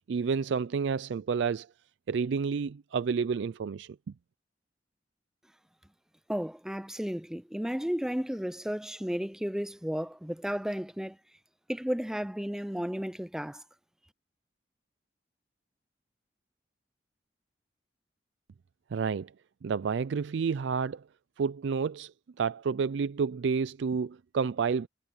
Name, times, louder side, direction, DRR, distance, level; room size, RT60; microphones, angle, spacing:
voice 1, 0.1-1.7 2.1-4.0 18.9-19.3 19.6-21.0 21.4-22.1 22.4-24.9, right 5 dB, 80° right, 0.4 m, -30 dB
voice 2, 6.3-11.2 11.7-13.6, equal, 5° right, 0.4 m, -33 dB
head